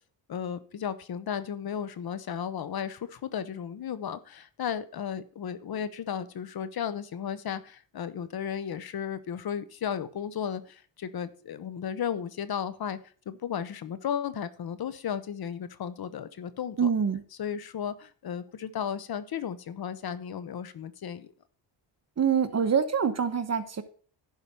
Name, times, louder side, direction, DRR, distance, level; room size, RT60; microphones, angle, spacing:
voice 1, 0.3-13.0 13.3-16.9 17.4-21.3, left 8 dB, 55° left, 14 dB, 0.9 m, -34 dB
voice 2, 16.8-17.2 22.2-23.8, right 7 dB, 35° right, 10 dB, 1.1 m, -25 dB
11.0 x 4.8 x 5.5 m, 0.43 s
cardioid pair, 95°, 44 cm